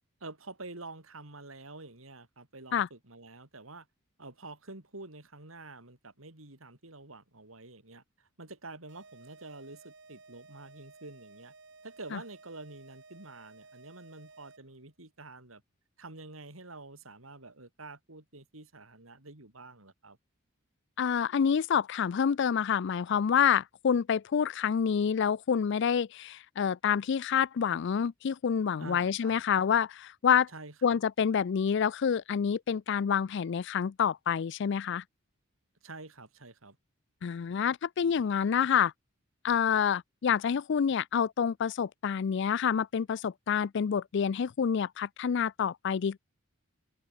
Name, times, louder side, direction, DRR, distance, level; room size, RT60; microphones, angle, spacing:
voice 1, 0.2-3.9 4.2-11.5 11.8-15.6 16.0-20.2 28.8-29.4 30.5-31.0 35.8-36.8, right 2 dB, 85° right, 4.2 m, -48 dB
sound 1, 8.9-14.8, right 3 dB, 60° right, 3.5 m, -55 dB
voice 2, 21.0-30.5 30.8-35.0 37.2-38.9 39.4-46.2, left 7 dB, 60° left, 0.4 m, -28 dB
open air
head